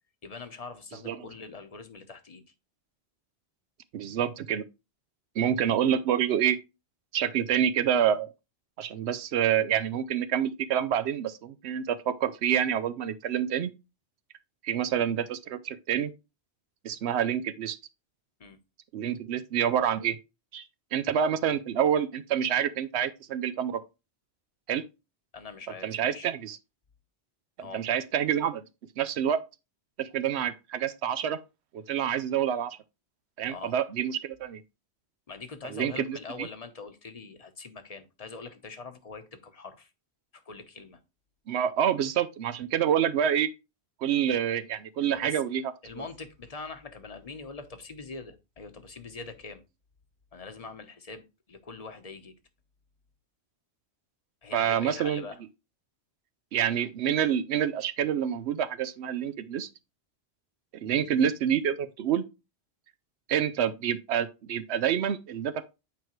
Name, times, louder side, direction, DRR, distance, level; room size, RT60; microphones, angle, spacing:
voice 1, 0.2-2.4 18.4-18.6 25.3-26.3 27.6-27.8 33.5-33.7 35.3-39.9 40.3-41.0 45.1-45.4 45.8-49.6 50.3-52.3 54.4-55.4 61.0-61.1, left 4 dB, 35° left, 1.0 m, -43 dB
voice 2, 3.9-4.6 5.4-6.6 7.1-8.3 8.8-13.7 14.6-16.1 16.8-17.8 18.9-20.2 20.5-20.7 20.9-23.8 24.7-24.8 25.8-26.6 27.6-28.6 29.0-29.4 30.0-31.4 31.7-32.8 33.4-34.6 35.7-36.5 41.5-43.5 44.0-45.6 46.0-46.1 54.5-55.3 56.5-59.7 60.8-62.2 63.3-65.7, right 9 dB, 80° right, 0.8 m, -27 dB
8.8 x 4.5 x 3.1 m
omnidirectional pair, 1.1 m